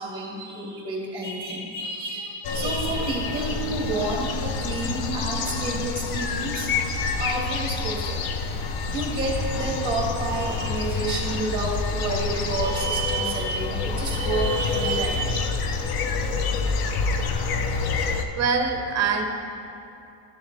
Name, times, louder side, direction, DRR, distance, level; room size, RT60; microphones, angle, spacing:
voice 1, 0.0-8.2 8.9-15.7, right 2 dB, 10° right, -2 dB, 1.7 m, -29 dB
sound 1, 2.4-18.2, left 4 dB, 50° left, 0.6 m, -27 dB
voice 2, 18.4-19.2, right 5 dB, 35° right, 5 dB, 0.7 m, -23 dB
12.5 x 7.1 x 3.3 m, 2.7 s
cardioid pair, 160°, 48 cm